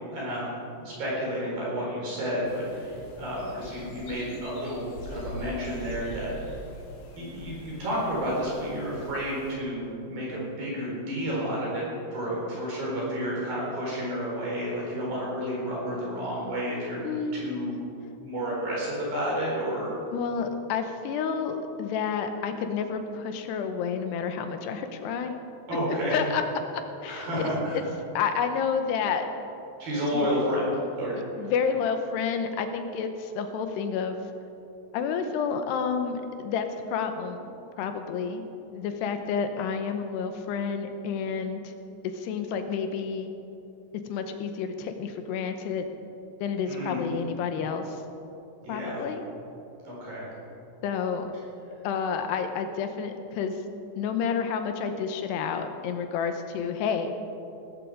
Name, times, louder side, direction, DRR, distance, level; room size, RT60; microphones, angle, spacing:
voice 1, 0.1-6.6 7.2-17.0 17.3-17.8 18.2-19.9 25.7-26.2 27.1-27.8 29.8-30.7 31.0-31.1 31.4-31.5 46.7-47.1 48.6-49.1 49.9-50.3, equal, 50° right, -5 dB, 5.9 m, -31 dB
sound 1, 2.4-9.6, left 2 dB, 55° left, 2.8 m, -43 dB
voice 2, 17.0-17.6 20.1-25.3 26.1-26.4 27.0-27.8 28.1-29.3 30.1-30.3 31.4-34.2 34.9-38.4 38.7-41.7 42.1-43.3 44.1-45.8 46.4-48.0 48.7-49.2 50.8-51.3 51.8-53.6 54.0-57.1, left 6 dB, 75° left, 7 dB, 2.8 m, -30 dB
17.5 x 14.5 x 5.0 m, 2.8 s
omnidirectional pair, 5.3 m